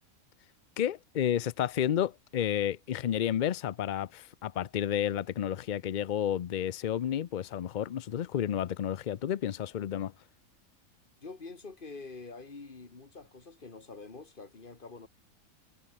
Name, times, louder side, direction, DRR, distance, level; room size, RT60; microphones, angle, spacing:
voice 1, 0.8-10.1, left 10 dB, 75° left, 0.4 m, -31 dB
voice 2, 11.2-15.1, left 3 dB, 35° left, 2.1 m, -46 dB
omnidirectional pair, 1.5 m